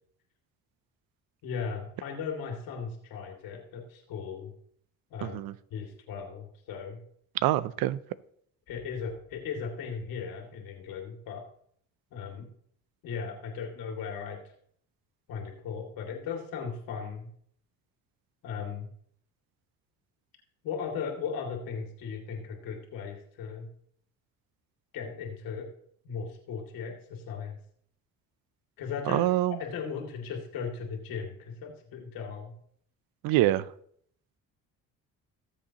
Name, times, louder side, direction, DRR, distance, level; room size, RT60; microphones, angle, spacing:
voice 1, 1.4-4.5 5.1-5.4 5.7-7.0 8.7-11.4 12.1-12.5 13.0-14.4 15.3-17.3 18.4-18.9 20.6-23.7 24.9-25.7 26.0-27.6 28.8-29.3 29.6-32.5, left 6 dB, 90° left, 1 dB, 2.5 m, -37 dB
voice 2, 5.2-5.5 7.4-8.0 29.1-29.6 33.2-33.7, right 15 dB, 85° right, 18 dB, 0.6 m, -25 dB
18.5 x 7.4 x 2.9 m, 0.65 s
cardioid pair, 95°, 34 cm